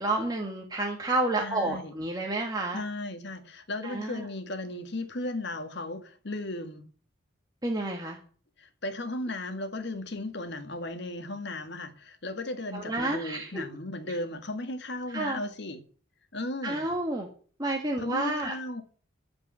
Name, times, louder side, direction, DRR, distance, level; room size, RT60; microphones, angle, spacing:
voice 1, 0.0-2.8 3.8-4.2 7.6-8.2 12.7-13.6 15.1-15.4 16.6-17.3 17.6-18.5, right 2 dB, 20° right, 1.7 m, -30 dB
voice 2, 1.4-1.9 2.7-6.9 8.6-15.8 16.3-16.9 18.0-18.8, left 2 dB, 55° left, 1.8 m, -36 dB
13.5 x 5.3 x 8.9 m
head